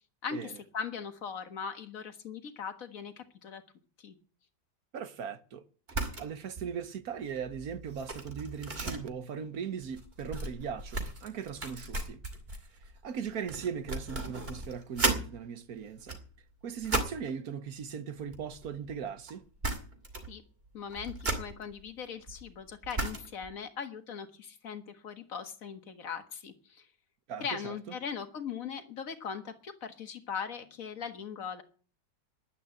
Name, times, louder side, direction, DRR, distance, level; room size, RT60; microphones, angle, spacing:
voice 1, 0.2-3.6 4.0-4.2 20.3-20.4 20.7-26.9 27.4-31.6, left 6 dB, 50° left, 1.8 m, -40 dB
voice 2, 4.9-5.6 6.2-12.2 13.0-16.2 16.6-19.4 27.3-27.8, right 7 dB, 60° right, 1.5 m, -38 dB
sound 1, 5.9-6.3 6.6-6.8 7.2-15.3 15.9-17.3 18.2-19.0 19.3-19.4 19.6-20.4 20.7-23.5, right 2 dB, 35° right, 2.7 m, -36 dB
11.0 x 9.4 x 9.1 m
omnidirectional pair, 1.9 m